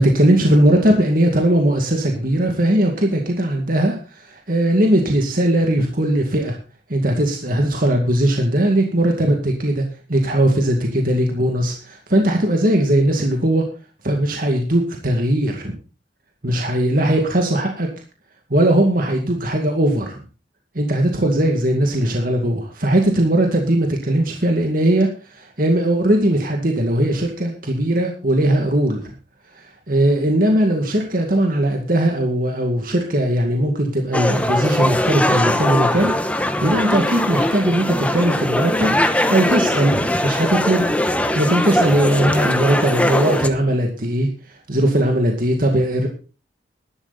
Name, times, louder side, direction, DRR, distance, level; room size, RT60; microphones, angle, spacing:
voice 1, 0.0-6.6 6.9-9.8 10.1-13.6 14.0-15.7 16.4-17.9 18.5-20.2 20.8-29.0 29.9-36.1 36.6-38.9 39.3-40.9 41.4-44.3 44.7-46.1, right 1 dB, 50° right, 2 dB, 2.2 m, -19 dB
sound 1, 34.1-43.5, left 1 dB, 10° left, 1.0 m, -20 dB
12.5 x 12.5 x 4.1 m, 0.34 s
head